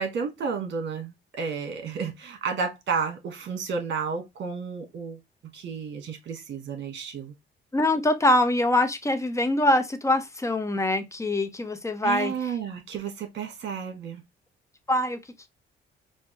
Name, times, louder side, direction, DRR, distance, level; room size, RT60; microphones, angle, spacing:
voice 1, 0.0-5.2 5.5-7.3 12.0-14.2, right 5 dB, 65° right, 1.4 m, -32 dB
voice 2, 7.7-12.3 14.9-15.2, left 1 dB, 15° left, 0.7 m, -23 dB
5.0 x 2.2 x 3.0 m
cardioid pair, 90°, 20 cm